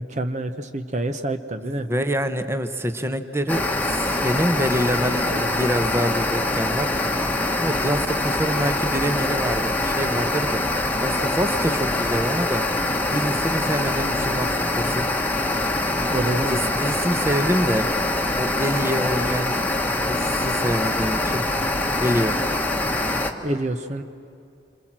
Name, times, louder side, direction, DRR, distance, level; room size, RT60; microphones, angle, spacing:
voice 1, 0.0-1.9 5.3-5.5 16.1-16.6 23.4-24.0, right 2 dB, 40° right, 8 dB, 0.9 m, -27 dB
voice 2, 1.7-3.7 3.9-7.1 7.6-10.6 11.0-12.7 13.1-15.1 16.5-17.9 18.3-19.6 20.0-21.5 21.9-22.4, equal, 15° right, 9 dB, 1.0 m, -26 dB
sound 1, 3.5-23.3, left 2 dB, 10° left, 1.3 m, -24 dB
27.5 x 26.5 x 7.5 m, 2.6 s
head